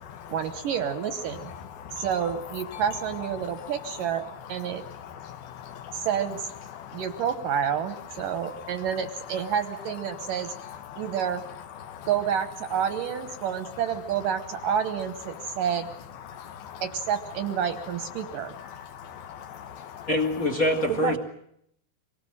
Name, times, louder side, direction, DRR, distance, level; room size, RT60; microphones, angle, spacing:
voice 1, 0.3-1.5 2.0-4.8 6.1-6.4 6.9-10.5 11.0-11.4 12.1-15.9 16.8-18.5 20.9-21.2, right 8 dB, 70° right, 9 dB, 2.2 m, -29 dB
voice 2, 5.1-6.1 6.8-7.0 8.6-8.7 10.2-10.3 10.9-11.1 11.9-12.1 16.3-16.8 18.6-20.1, left 9 dB, 70° left, 9 dB, 2.7 m, -42 dB
voice 3, 20.1-21.2, left 1 dB, 30° left, 6 dB, 1.7 m, -24 dB
25.0 x 19.5 x 8.8 m, 0.72 s
omnidirectional pair, 4.8 m